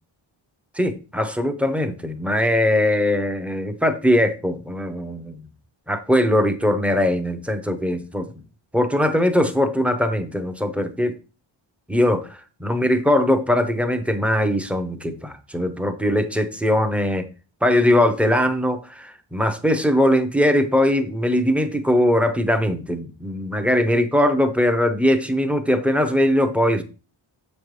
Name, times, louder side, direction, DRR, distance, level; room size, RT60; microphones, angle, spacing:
voice 1, 0.7-5.4 5.9-8.3 8.7-11.1 11.9-17.3 17.6-26.8, left 1 dB, 5° right, 8 dB, 0.7 m, -21 dB
7.0 x 5.3 x 3.2 m, 0.34 s
cardioid pair, 90°, 49 cm